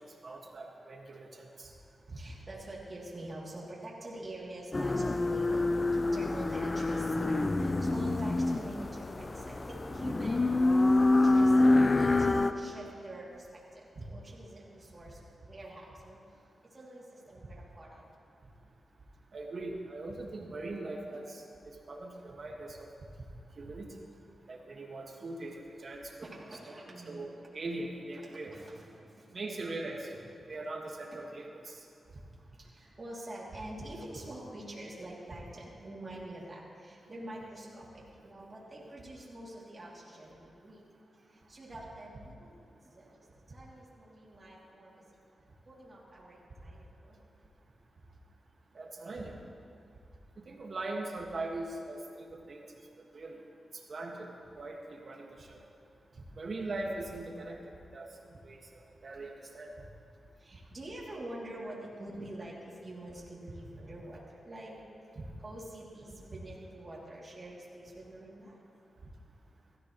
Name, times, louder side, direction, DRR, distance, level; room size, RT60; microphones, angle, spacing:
voice 1, 0.2-1.7 2.1-2.2 14.0-14.1 19.3-22.9 23.6-23.9 24.5-28.6 29.3-30.1 30.5-31.8 48.7-49.3 50.4-52.7 53.1-53.4 53.9-55.6 56.3-57.6 57.9-58.2 58.4-59.7, right 2 dB, 55° right, 0 dB, 1.8 m, -41 dB
voice 2, 2.1-10.8 11.2-16.2 16.7-18.0 26.2-27.3 28.3-29.2 32.6-40.8 41.3-45.0 45.7-47.2 60.4-64.8 65.4-68.6, right 1 dB, 35° right, -6 dB, 2.9 m, -46 dB
sound 1, 4.7-12.5, left 2 dB, 35° left, 0.5 m, -26 dB
16.5 x 13.5 x 3.2 m, 2.5 s
cardioid pair, 70°, 0 cm